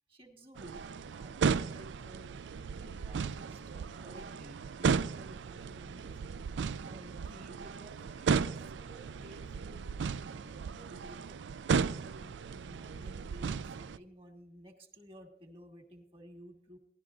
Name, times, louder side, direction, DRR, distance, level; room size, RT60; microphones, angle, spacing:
voice 1, 0.1-2.3 2.7-6.2 6.8-9.8 10.4-11.6 11.9-16.8, equal, 30° right, 3 dB, 1.8 m, -54 dB
sound 1, 0.6-14.0, right 5 dB, 90° right, 0.4 m, -35 dB
18.5 x 11.5 x 2.5 m, 0.75 s
head